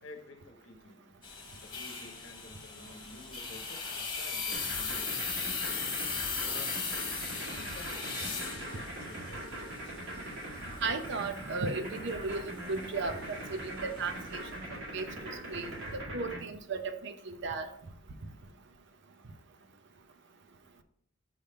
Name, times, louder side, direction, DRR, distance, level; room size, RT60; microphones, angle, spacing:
voice 1, 0.0-1.1 1.6-5.3 6.4-6.7 7.3-10.3, left 2 dB, 75° left, 5 dB, 0.9 m, -51 dB
sound 1, 1.2-15.9, left 5 dB, 25° left, 1.4 m, -39 dB
sound 2, 4.5-16.4, right 1 dB, 85° right, 2.3 m, -41 dB
voice 2, 10.8-15.1 15.5-17.7, right 3 dB, 65° right, 7 dB, 0.7 m, -36 dB
5.7 x 3.4 x 5.5 m, 0.68 s
head